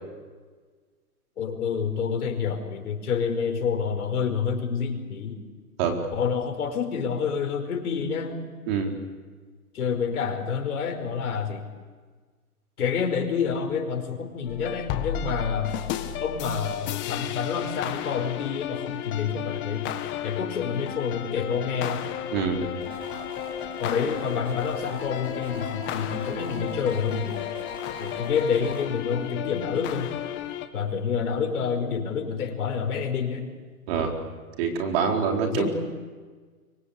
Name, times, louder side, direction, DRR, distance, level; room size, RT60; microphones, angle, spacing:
voice 1, 1.4-5.4 6.1-8.4 9.7-11.7 12.8-15.7 16.2-19.9 20.2-22.0 23.8-27.5 28.0-30.1 30.7-33.5 35.5-35.7, left 6 dB, 65° left, 4 dB, 5.2 m, -28 dB
sound 1, 14.4-30.7, left 10 dB, 25° left, 1.6 m, -33 dB
voice 2, 22.3-22.7 33.9-34.1 34.6-35.7, right 6 dB, 40° right, 2 dB, 4.4 m, -25 dB
sound 2, 22.8-28.8, left 1 dB, 10° right, 7.2 m, -42 dB
25.5 x 24.5 x 8.5 m, 1.4 s
hypercardioid pair, 145°, 47 cm